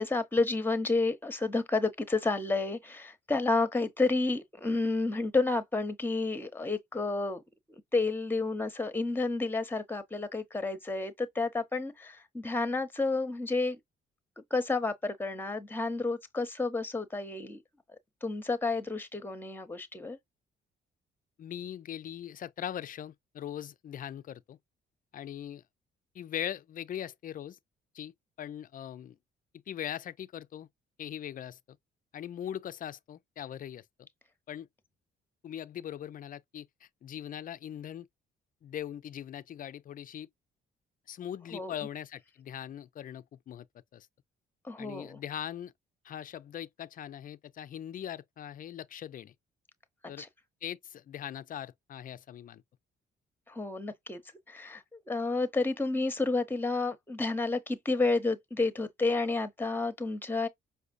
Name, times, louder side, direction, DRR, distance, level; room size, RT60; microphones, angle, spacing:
voice 1, 0.0-7.4 7.9-13.8 14.5-17.6 18.2-20.2 41.5-41.7 44.6-45.2 50.0-50.3 53.5-54.2 54.5-60.5, left 3 dB, 10° left, 0.8 m, -30 dB
voice 2, 21.4-24.6 25.1-25.6 26.1-27.6 27.9-28.1 28.4-29.2 29.7-30.7 31.0-31.8 32.1-33.8 34.5-34.7 35.4-38.1 38.6-40.3 41.1-43.7 43.9-44.1 44.8-45.7 46.0-49.3 50.1-50.3 50.6-52.6, left 10 dB, 45° left, 0.4 m, -40 dB
5.0 x 2.1 x 2.5 m
cardioid pair, 90°, 20 cm